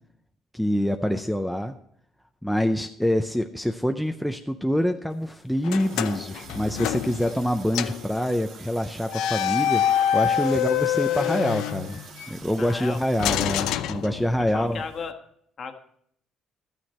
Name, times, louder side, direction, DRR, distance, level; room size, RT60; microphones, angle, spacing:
voice 1, 0.5-1.8 2.4-9.8 10.1-12.0 12.3-14.8, equal, ahead, 5 dB, 0.5 m, -26 dB
sound 1, 5.6-7.5 7.7-8.1 9.1-12.3 13.2-14.6, left 10 dB, 85° left, 0.5 m, -26 dB
Water tap faucet, 5.8-13.6, right 6 dB, 60° right, 1.5 m, -47 dB
voice 2, 12.6-13.0 14.4-15.1 15.6-15.7, left 5 dB, 40° left, 5 dB, 1.3 m, -34 dB
13.0 x 9.2 x 4.2 m, 0.69 s
cardioid pair, 150°, 0 cm